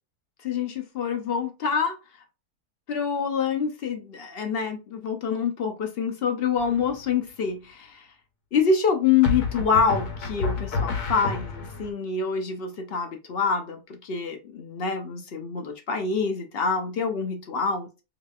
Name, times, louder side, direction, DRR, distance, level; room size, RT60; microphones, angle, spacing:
voice 1, 0.4-2.0 2.9-8.1 8.5-17.9, left 6 dB, 60° left, 0.6 m, -26 dB
sound 1, 6.6-7.1 9.2-11.9, left 4 dB, 80° left, 1.4 m, -29 dB
4.5 x 2.9 x 2.3 m
omnidirectional pair, 1.6 m